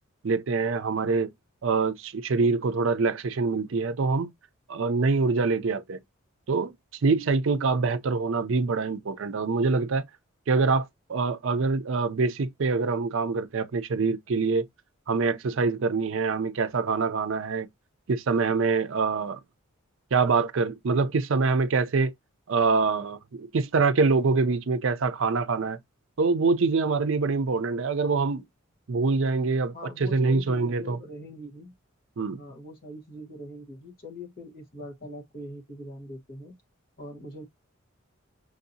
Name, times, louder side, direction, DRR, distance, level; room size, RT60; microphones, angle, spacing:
voice 1, 0.2-1.3 1.6-4.3 4.7-6.0 6.5-6.7 7.0-10.0 10.5-14.7 15.1-17.7 18.1-19.4 20.1-22.1 22.5-25.8 26.2-28.4 28.9-31.0 32.2-32.4, right 4 dB, 60° right, 0.5 m, -25 dB
voice 2, 29.7-31.7 32.4-36.6 37.0-37.4, left 1 dB, 45° left, 1.2 m, -42 dB
6.3 x 2.7 x 2.6 m
head